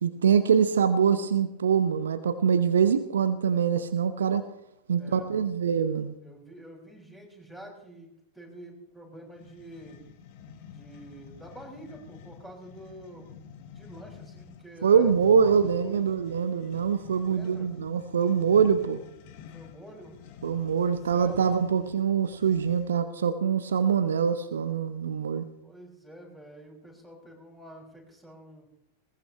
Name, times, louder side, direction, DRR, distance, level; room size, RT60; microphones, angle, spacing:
voice 1, 0.0-4.5 4.9-6.2 14.8-19.0 20.4-25.5, right 7 dB, 65° right, 11 dB, 0.9 m, -24 dB
voice 2, 5.0-5.4 6.2-10.0 10.6-13.3 13.7-16.2 17.2-17.7 19.5-20.2 20.8-21.6 25.6-28.7, right 1 dB, 5° left, -1 dB, 6.5 m, -48 dB
sound 1, 9.3-23.1, left 7 dB, 45° left, 1.6 m, -48 dB
21.0 x 19.5 x 3.3 m, 0.81 s
figure-of-eight pair, 90°, 0 cm